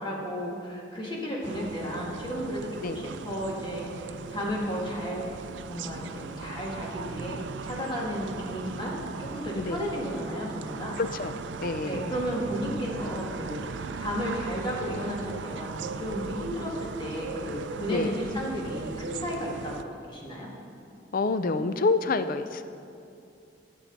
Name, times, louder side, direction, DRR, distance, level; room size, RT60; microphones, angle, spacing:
voice 1, 0.0-5.3 5.7-11.0 11.9-20.5, equal, 25° left, -4 dB, 2.0 m, -33 dB
sound 1, 1.4-19.8, right 5 dB, 80° right, 0.4 m, -38 dB
voice 2, 11.0-11.4 11.6-12.1 17.9-18.2 21.1-22.6, left 3 dB, 50° left, 11 dB, 0.5 m, -27 dB
15.0 x 7.7 x 4.0 m, 2.6 s
head